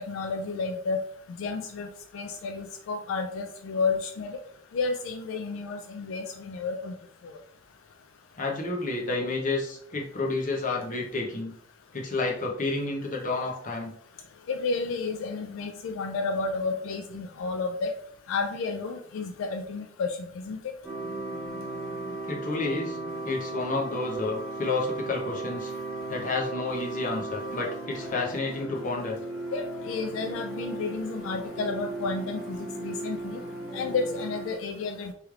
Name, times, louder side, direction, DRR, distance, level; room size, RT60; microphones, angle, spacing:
voice 1, 0.1-1.0 1.3-1.9 2.1-4.4 4.7-6.9 7.2-7.3 14.5-17.9 18.3-20.6 29.5-33.4 33.7-35.1, left 4 dB, 80° left, 5 dB, 0.3 m, -31 dB
voice 2, 8.4-11.5 11.9-13.9 22.2-23.0 23.2-25.7 26.1-29.2, left 3 dB, 40° left, 0 dB, 0.7 m, -30 dB
sound 1, 20.8-34.6, right 2 dB, 5° right, 0.7 m, -36 dB
3.2 x 3.1 x 2.4 m, 0.62 s
head